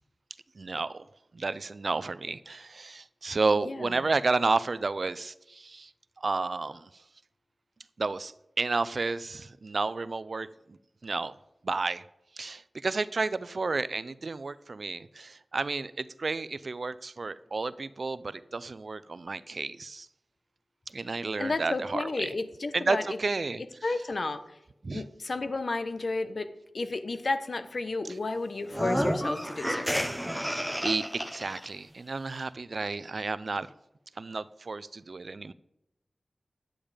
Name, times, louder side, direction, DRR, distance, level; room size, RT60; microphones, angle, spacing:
voice 1, 0.6-1.1 1.3-5.9 6.2-6.9 8.0-11.4 11.6-12.0 12.4-20.1 20.9-22.3 22.7-23.9 24.8-25.0 29.8-29.9 30.3-31.0 31.3-33.7 34.2-35.5, right 3 dB, 65° right, 16 dB, 0.5 m, -31 dB
voice 2, 21.4-23.0 23.8-24.4 24.9-30.1, left 3 dB, 65° left, 9 dB, 1.0 m, -32 dB
sound 1, 28.7-31.7, equal, ahead, 0.9 m, -31 dB
10.5 x 8.9 x 5.1 m, 0.84 s
wide cardioid pair, 60°, 0 cm